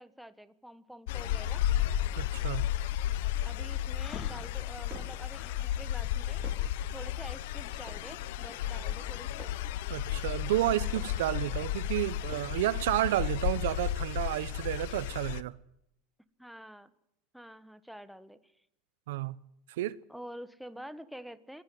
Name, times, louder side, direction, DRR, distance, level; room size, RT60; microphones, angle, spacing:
voice 1, 0.0-1.6 3.4-6.4 6.9-9.5 16.4-16.9 17.3-18.5 20.1-21.6, equal, ahead, 1.3 m, -47 dB
sound 1, 1.1-15.4, left 12 dB, 75° left, 1.0 m, -33 dB
voice 2, 2.2-2.6 9.9-15.5 19.1-19.4 19.7-20.0, right 15 dB, 85° right, 0.9 m, -31 dB
Breathing, 4.0-5.7, left 6 dB, 35° left, 3.1 m, -45 dB
sound 2, 4.4-5.3 5.9-6.8 7.5-8.2 8.9-9.7 10.4-11.3 11.9-12.7, right 6 dB, 25° right, 4.8 m, -52 dB
26.5 x 16.5 x 7.8 m
supercardioid pair, 145°, 0 cm